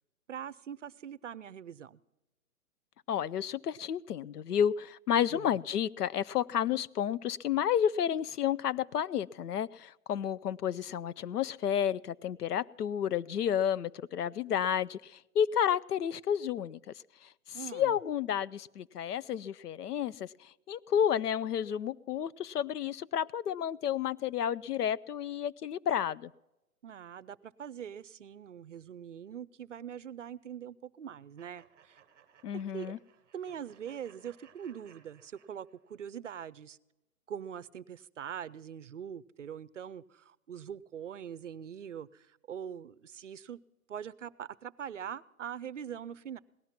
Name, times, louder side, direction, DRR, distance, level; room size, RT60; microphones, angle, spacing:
voice 1, 0.3-2.0 5.3-5.6 17.5-18.0 26.8-32.0 32.7-33.0 33.3-36.8 37.3-43.6 43.9-46.4, right 8 dB, 55° right, 0.5 m, -43 dB
voice 2, 3.1-16.8 17.5-26.3 32.4-33.0, left 9 dB, 85° left, 0.7 m, -31 dB
sound 1, 31.4-36.0, right 8 dB, 15° right, 1.0 m, -63 dB
17.5 x 12.0 x 5.8 m
hypercardioid pair, 175°, 45 cm